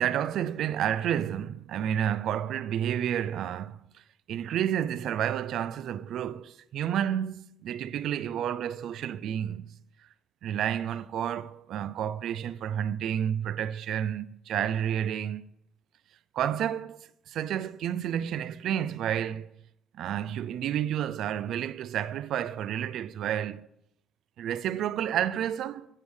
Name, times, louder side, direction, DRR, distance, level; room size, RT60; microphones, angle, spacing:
voice 1, 0.0-3.8 4.3-9.7 10.4-15.4 16.3-19.5 19.9-23.7 24.4-25.9, right 10 dB, 75° right, 0.3 m, -30 dB
7.4 x 6.2 x 4.8 m
cardioid pair, 135°, 0 cm